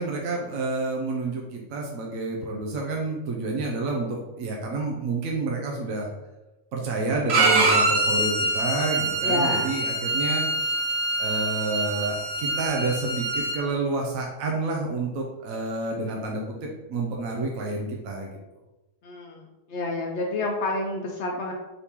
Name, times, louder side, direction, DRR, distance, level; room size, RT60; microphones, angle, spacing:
voice 1, 0.0-6.1 6.7-10.8 11.2-16.6 16.9-18.3, right 3 dB, 80° right, -1 dB, 1.0 m, -29 dB
Bowed string instrument, 7.3-13.6, right 2 dB, 55° right, 0.9 m, -24 dB
voice 2, 9.2-9.7 19.0-19.4 19.7-21.5, left 2 dB, 65° left, 0 dB, 0.8 m, -28 dB
4.0 x 2.9 x 3.4 m, 1.0 s
omnidirectional pair, 1.4 m